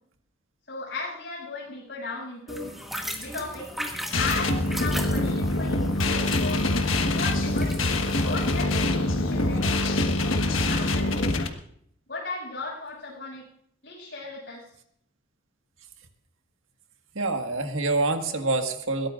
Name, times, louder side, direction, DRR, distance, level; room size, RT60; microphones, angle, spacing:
voice 1, 0.7-2.7 3.2-3.7 4.1-6.7 7.1-11.5 12.1-13.5 13.8-14.7, left 3 dB, 60° left, -2 dB, 7.3 m, -36 dB
sound 1, 2.5-8.6, equal, ahead, 2.0 m, -38 dB
sound 2, 4.1-11.5, left 2 dB, 85° left, 1.4 m, -24 dB
voice 2, 17.2-19.1, right 3 dB, 85° right, 5 dB, 1.7 m, -26 dB
21.5 x 17.0 x 2.5 m, 0.67 s
head